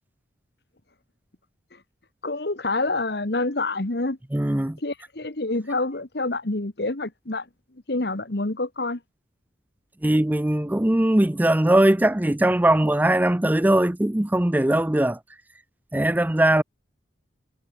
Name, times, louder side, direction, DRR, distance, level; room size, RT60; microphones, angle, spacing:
voice 1, 2.2-4.2 4.8-7.5 7.9-9.0, left 2 dB, 60° left, 1.4 m, -27 dB
voice 2, 4.3-4.8 10.0-15.2 15.9-16.6, right 1 dB, 10° right, 0.4 m, -20 dB
head